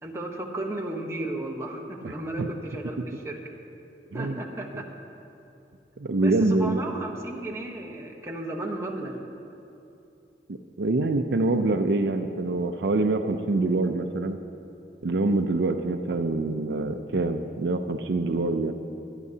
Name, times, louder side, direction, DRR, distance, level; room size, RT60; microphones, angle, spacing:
voice 1, 0.0-3.4 4.1-4.8 6.2-9.2, right 1 dB, 15° right, 0 dB, 1.0 m, -34 dB
voice 2, 6.0-6.8 10.5-14.4 15.0-18.7, right 2 dB, 70° right, 7 dB, 0.5 m, -25 dB
23.5 x 9.7 x 2.8 m, 2.8 s
head